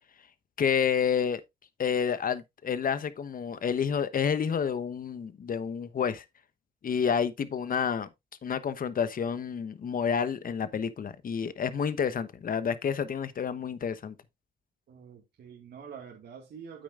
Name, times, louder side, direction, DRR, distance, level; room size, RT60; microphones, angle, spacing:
voice 1, 0.6-1.4 1.8-6.2 6.8-8.1 8.4-14.1, left 7 dB, 45° left, 1.0 m, -29 dB
voice 2, 14.9-16.8, right 7 dB, 60° right, 2.1 m, -46 dB
8.9 x 8.5 x 2.5 m
cardioid pair, 90°, 20 cm